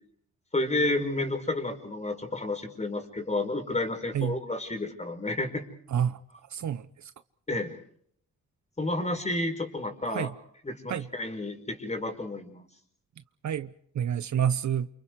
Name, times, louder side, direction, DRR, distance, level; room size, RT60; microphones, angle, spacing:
voice 1, 0.5-5.7 7.5-7.7 8.8-10.3 10.6-12.6, left 2 dB, 20° left, 5.2 m, -31 dB
voice 2, 6.5-6.8 10.1-10.3 10.9-11.1 13.4-13.7 13.9-14.9, right 9 dB, 60° right, 0.9 m, -28 dB
29.5 x 28.5 x 4.8 m
cardioid pair, 100°, 33 cm